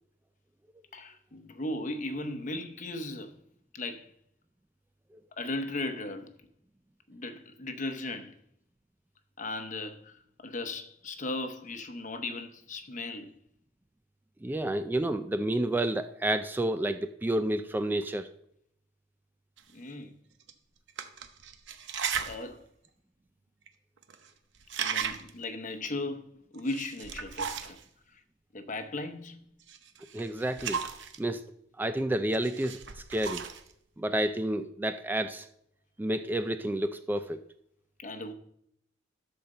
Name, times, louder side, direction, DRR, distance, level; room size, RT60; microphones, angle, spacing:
voice 1, 0.9-3.4 3.7-4.1 5.3-6.3 7.1-8.4 9.4-13.3 19.7-20.1 22.2-22.7 24.8-27.8 28.1-28.2 28.5-29.4 38.0-38.3, left 2 dB, 45° left, 0.9 m, -37 dB
voice 2, 14.4-18.3 30.1-30.8 31.2-31.4 31.8-33.4 34.0-35.5 36.0-37.4, right 1 dB, 10° right, 0.3 m, -30 dB
sound 1, 19.6-19.7 20.4-20.5 20.9-22.4 22.8-22.9 23.7-23.8 24.0-24.3 24.6-25.4 26.5-27.8 29.7-31.2 32.3-33.7, right 7 dB, 70° right, 0.8 m, -36 dB
12.0 x 4.4 x 6.5 m
head